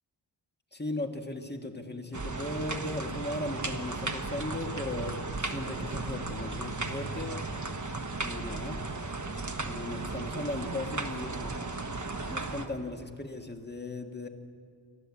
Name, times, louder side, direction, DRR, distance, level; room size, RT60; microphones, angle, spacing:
voice 1, 0.7-7.4 8.2-8.8 9.6-11.6 12.3-14.3, left 2 dB, 20° left, 4 dB, 1.7 m, -37 dB
sound 1, 2.1-12.7, right 3 dB, 35° right, 1.3 m, -35 dB
29.5 x 11.5 x 8.5 m, 2.3 s
wide cardioid pair, 100°, 48 cm